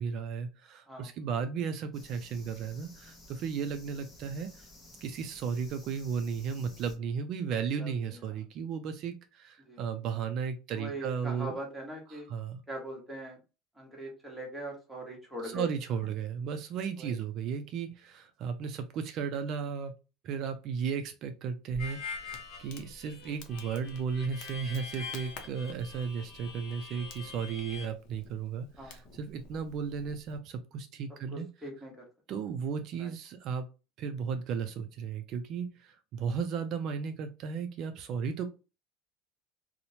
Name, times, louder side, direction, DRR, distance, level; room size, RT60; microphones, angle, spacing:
voice 1, 0.0-4.5 5.0-11.6 12.1-12.6 15.4-19.9 20.2-31.5 32.3-33.7 34.0-38.5, right 6 dB, 45° right, 8 dB, 0.3 m, -35 dB
sound 1, 1.9-7.0, left 2 dB, 20° left, 0.6 m, -54 dB
voice 2, 7.7-8.2 9.7-9.8 10.7-12.3 12.7-13.4 13.8-15.7 17.0-17.1 28.8-29.0 31.3-32.0 33.0-33.1, right 1 dB, ahead, -2 dB, 0.9 m, -41 dB
Crackle, 21.7-30.4, left 3 dB, 60° left, 0.6 m, -52 dB
Harmonica, 21.8-27.9, left 5 dB, 40° left, 0.9 m, -44 dB
2.9 x 2.0 x 2.7 m, 0.31 s
cardioid pair, 155°, 0 cm